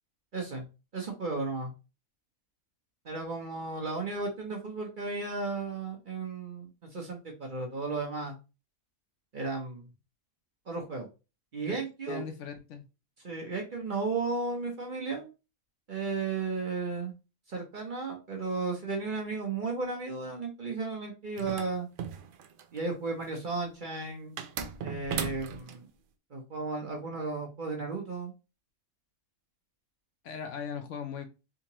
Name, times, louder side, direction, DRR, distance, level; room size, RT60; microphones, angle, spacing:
voice 1, 0.3-0.6 0.9-1.7 3.0-8.4 9.3-9.9 10.7-11.1 11.5-12.2 13.2-15.3 15.9-17.1 17.5-21.9 22.7-24.4 24.8-25.9 26.3-28.3, right 4 dB, 45° right, 0.8 m, -34 dB
voice 2, 12.1-12.8 30.2-31.3, left 7 dB, 70° left, 0.8 m, -38 dB
sound 1, 21.4-22.8 24.4-25.8, right 7 dB, 80° right, 0.4 m, -37 dB
3.7 x 2.8 x 2.8 m
omnidirectional pair, 1.5 m